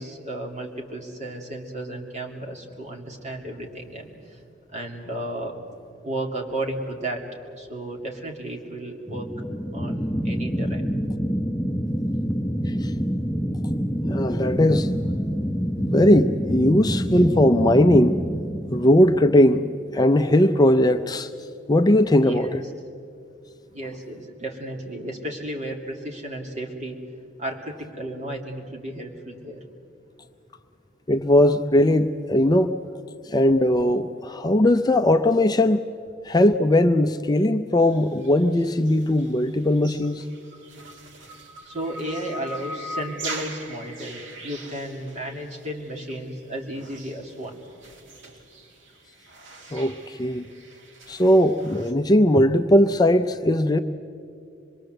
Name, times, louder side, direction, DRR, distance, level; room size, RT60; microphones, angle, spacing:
voice 1, 0.0-4.1 4.7-5.5 6.0-7.2 7.6-9.3 9.7-10.9 22.2-22.6 23.7-27.0 27.4-29.6 41.6-47.6, right 1 dB, 40° right, 1 dB, 2.8 m, -33 dB
sound 1, 9.1-20.0, equal, 5° left, 1.1 m, -27 dB
voice 2, 14.0-14.9 15.9-18.2 18.7-21.3 21.7-22.6 31.1-32.7 33.3-35.8 36.2-40.3 49.7-50.5 51.1-53.8, left 1 dB, 20° left, 8 dB, 0.5 m, -19 dB
sound 2, 37.8-51.9, right 1 dB, 75° right, 2.3 m, -41 dB
25.5 x 22.0 x 7.8 m, 2.4 s
head